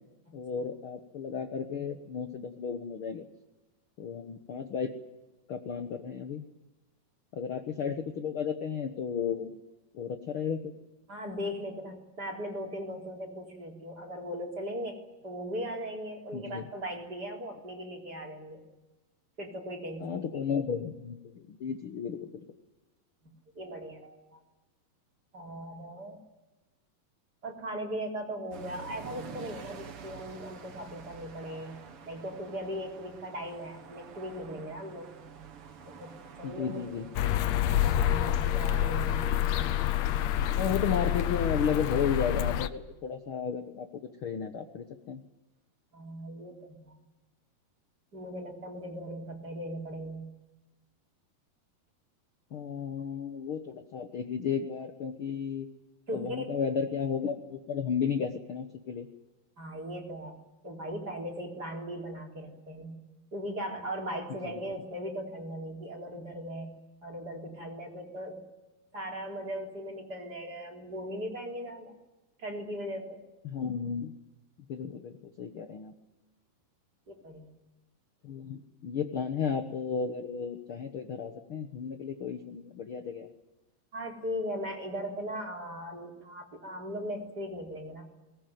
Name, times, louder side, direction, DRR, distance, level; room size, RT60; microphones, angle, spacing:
voice 1, 0.3-3.2 4.0-4.9 5.5-6.4 7.3-9.6 9.9-10.7 16.3-16.6 20.0-22.4 36.4-37.1 40.5-45.2 52.5-55.7 56.1-59.1 64.4-64.5 73.4-74.1 74.7-75.9 78.2-83.3, left 7 dB, 70° left, 7 dB, 1.2 m, -33 dB
voice 2, 11.1-18.6 19.4-20.6 23.2-24.4 25.3-26.2 27.4-31.8 32.1-35.1 35.9-37.0 37.6-39.7 45.9-47.0 48.1-50.3 56.1-56.5 59.6-60.4 60.6-62.9 63.3-66.7 67.0-68.4 68.9-71.9 72.4-73.2 77.1-77.5 83.9-88.0, equal, 25° right, 1 dB, 3.8 m, -38 dB
sound 1, 28.5-39.8, right 5 dB, 45° right, 2.1 m, -49 dB
sound 2, 37.1-42.7, left 11 dB, 90° left, 1.5 m, -27 dB
22.5 x 19.5 x 9.3 m, 1.1 s
omnidirectional pair, 4.4 m